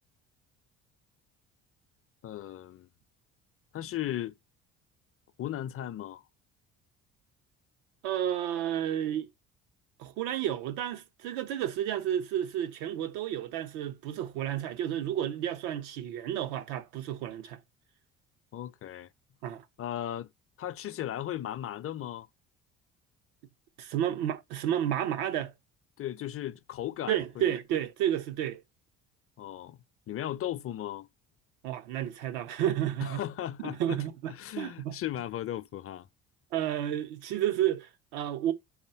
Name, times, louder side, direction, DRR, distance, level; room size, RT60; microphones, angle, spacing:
voice 1, 2.2-2.9 3.7-4.3 5.4-6.2 18.5-19.1 19.8-20.3 20.6-22.3 26.0-27.5 29.4-31.1 33.0-36.1, left 12 dB, 45° left, 0.6 m, -36 dB
voice 2, 8.0-9.3 10.0-17.6 19.4-19.6 23.8-25.5 27.1-28.6 31.6-33.2 33.6-35.0 36.5-38.5, right 11 dB, 90° right, 1.0 m, -31 dB
5.4 x 4.3 x 4.3 m
supercardioid pair, 75°, 31 cm